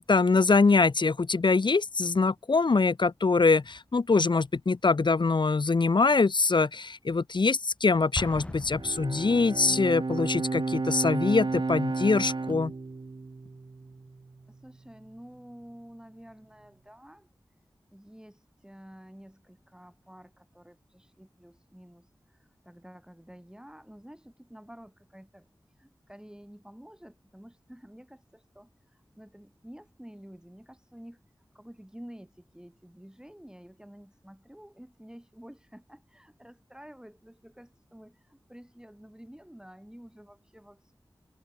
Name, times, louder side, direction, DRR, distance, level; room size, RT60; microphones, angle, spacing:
voice 1, 0.0-12.7, left 4 dB, 65° left, 0.9 m, -24 dB
Explosion, 8.1-9.9, left 1 dB, 15° left, 1.6 m, -39 dB
Bowed string instrument, 8.7-14.2, right 3 dB, 70° right, 2.1 m, -32 dB
voice 2, 14.5-17.3 17.9-31.2 31.5-40.9, equal, 10° right, 5.4 m, -50 dB
wide cardioid pair, 50°, 8 cm